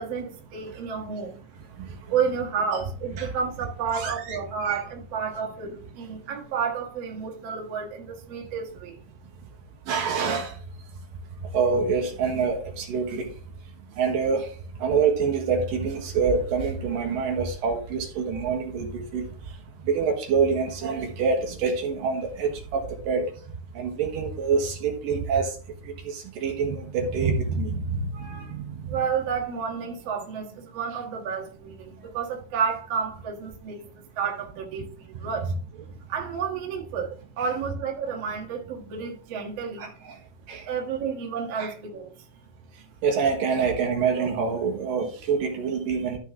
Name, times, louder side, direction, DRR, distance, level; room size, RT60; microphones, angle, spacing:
voice 1, 0.0-1.4 2.1-9.0 28.9-35.5 36.1-39.9 40.7-42.1, right 6 dB, 50° right, 2.4 m, -31 dB
voice 2, 3.9-4.4 4.6-4.8 9.9-10.5 11.5-13.3 14.0-14.5 14.8-19.3 19.8-23.3 23.7-25.6 25.8-29.0 39.8-40.2 40.5-40.6 41.6-41.7 43.0-46.2, right 5 dB, 75° right, 3.1 m, -26 dB
13.5 x 5.2 x 3.6 m
omnidirectional pair, 4.0 m